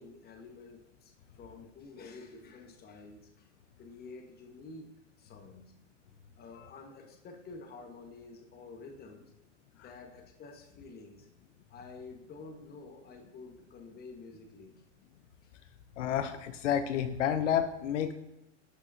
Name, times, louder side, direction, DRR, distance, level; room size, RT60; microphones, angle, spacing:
voice 1, 0.0-3.5 3.8-5.7 6.4-9.3 9.8-11.3 11.7-14.8, left 3 dB, 25° left, 4 dB, 1.2 m, -50 dB
voice 2, 16.0-18.1, left 9 dB, 80° left, 9 dB, 0.7 m, -30 dB
11.0 x 6.1 x 2.7 m, 0.88 s
hypercardioid pair, 110°, 36 cm